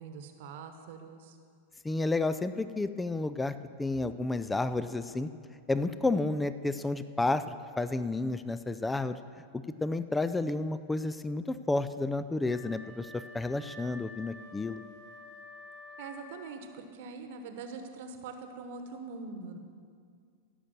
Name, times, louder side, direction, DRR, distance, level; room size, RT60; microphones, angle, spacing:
voice 1, 0.0-1.4 16.0-19.6, right 4 dB, 50° right, 7 dB, 1.2 m, -43 dB
voice 2, 1.8-3.5 3.8-5.3 5.7-9.2 9.8-14.8, left 2 dB, 10° left, 13 dB, 0.4 m, -31 dB
Wind instrument woodwind instrument, 12.4-16.9, left 2 dB, 50° left, 2.4 m, -49 dB
16.0 x 6.5 x 7.3 m, 2.2 s
figure-of-eight pair, 90°, 0 cm